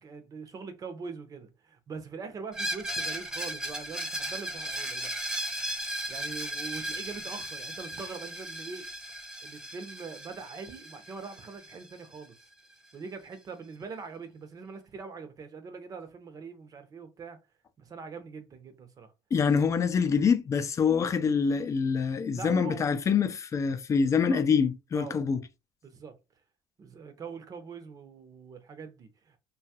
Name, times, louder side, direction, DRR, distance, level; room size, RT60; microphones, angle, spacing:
voice 1, 0.0-5.1 6.1-8.9 9.4-12.4 12.9-17.4 17.8-19.1 22.3-22.9 24.0-24.5 24.9-25.2 25.8-26.2 26.8-29.4, right 5 dB, 40° right, 0.7 m, -43 dB
Screech, 2.5-12.2, right 1 dB, 5° right, 0.8 m, -36 dB
voice 2, 19.3-25.4, left 6 dB, 35° left, 0.4 m, -25 dB
2.8 x 2.3 x 2.8 m
cardioid pair, 100°, 9 cm